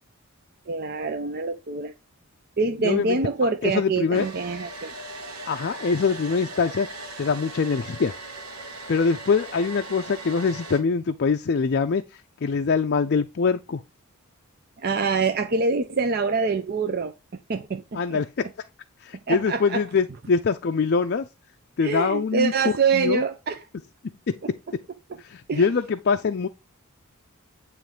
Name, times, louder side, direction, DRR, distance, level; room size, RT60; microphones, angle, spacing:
voice 1, 0.7-1.9 2.6-4.9 14.8-17.1 17.5-18.2 19.3-19.8 21.8-23.6 25.5-25.7, right 4 dB, 45° right, 0.5 m, -25 dB
voice 2, 2.8-3.2 3.6-4.3 5.5-8.2 8.9-13.8 17.9-18.5 19.0-21.3 21.8-23.2 24.3-24.4 25.2-26.5, left 5 dB, 45° left, 0.4 m, -24 dB
Domestic sounds home sounds, 4.1-10.8, right 2 dB, 80° right, 1.5 m, -39 dB
9.0 x 3.1 x 4.9 m
head